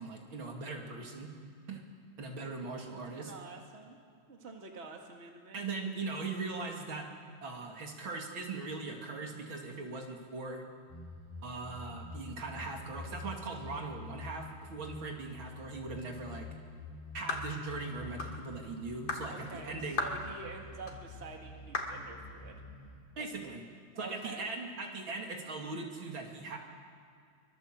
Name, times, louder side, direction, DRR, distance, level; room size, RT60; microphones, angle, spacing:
voice 1, 0.0-1.3 1.7-1.8 2.2-3.3 5.5-7.1 7.4-10.6 11.4-16.5 17.1-20.0 23.2-23.6 24.0-26.6, right 3 dB, 70° right, 1 dB, 3.2 m, -40 dB
voice 2, 2.9-4.0 4.3-5.6 19.3-22.6 23.4-23.5 23.9-24.5, right 3 dB, 30° right, 2 dB, 2.3 m, -47 dB
sound 1, 10.9-23.0, left 3 dB, 10° left, 6.0 m, -48 dB
sound 2, 17.3-17.5 18.2-18.4 19.1-19.3 20.0-20.2 20.9-21.0 21.7-22.0, left 3 dB, 65° left, 3.0 m, -34 dB
24.5 x 22.5 x 7.6 m, 2.3 s
omnidirectional pair, 2.3 m